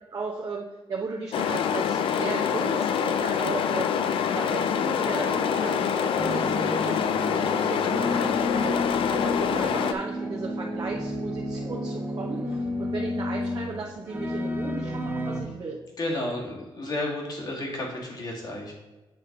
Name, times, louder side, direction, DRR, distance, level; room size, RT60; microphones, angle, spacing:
voice 1, 0.1-4.0 4.3-7.0 7.3-15.8, right 4 dB, 45° right, -2 dB, 0.9 m, -36 dB
sound 1, 1.3-9.9, left 7 dB, 80° left, 0.5 m, -25 dB
sound 2, 6.2-15.4, left 1 dB, 20° right, 1.0 m, -31 dB
voice 2, 16.0-18.7, left 1 dB, 50° left, -1 dB, 2.0 m, -32 dB
7.9 x 3.3 x 6.0 m, 1.1 s
cardioid pair, 100°, 9 cm